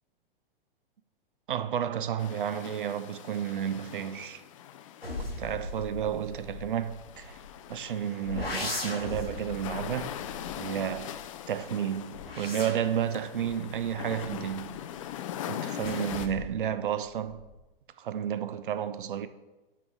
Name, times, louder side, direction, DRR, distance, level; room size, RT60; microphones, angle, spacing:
voice 1, 1.5-4.4 5.4-7.4 7.7-10.2 10.5-11.2 11.5-14.8 15.5-17.4 18.0-19.3, right 9 dB, 60° right, 0.5 m, -32 dB
sound 1, 2.2-16.3, left 11 dB, 35° left, 0.4 m, -41 dB
sound 2, 5.0-7.7 8.3-11.4 12.0-15.0 15.8-16.7 17.0-17.6, left 3 dB, 85° left, 1.3 m, -39 dB
5.9 x 4.8 x 6.5 m
figure-of-eight pair, 110°, 29 cm